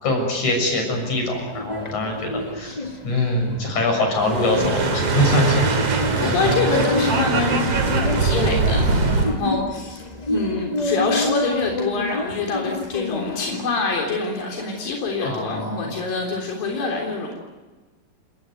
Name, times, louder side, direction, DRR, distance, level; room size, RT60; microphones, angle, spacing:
voice 1, 0.0-2.8 3.0-5.8 6.2-6.3 15.2-15.9, left 1 dB, 60° left, 2 dB, 8.3 m, -23 dB
sound 1, 0.9-13.5, left 2 dB, 35° left, 0.6 m, -29 dB
sound 2, 4.2-9.4, right 3 dB, 50° right, 3.4 m, -22 dB
voice 2, 6.2-17.3, left 4 dB, 90° left, 0 dB, 5.4 m, -25 dB
29.5 x 19.5 x 9.4 m, 1.2 s
omnidirectional pair, 3.9 m